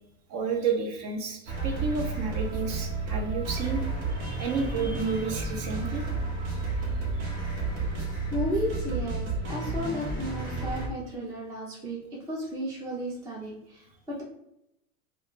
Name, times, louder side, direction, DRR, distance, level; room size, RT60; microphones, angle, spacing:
voice 1, 0.3-3.8 4.2-6.0, right 5 dB, 45° right, 3 dB, 0.7 m, -31 dB
sound 1, 1.5-10.9, right 3 dB, 60° right, 1.0 m, -31 dB
voice 2, 7.5-12.0 12.3-14.2, equal, 10° right, -3 dB, 0.4 m, -34 dB
2.4 x 2.3 x 3.6 m, 0.82 s
supercardioid pair, 125°, 43 cm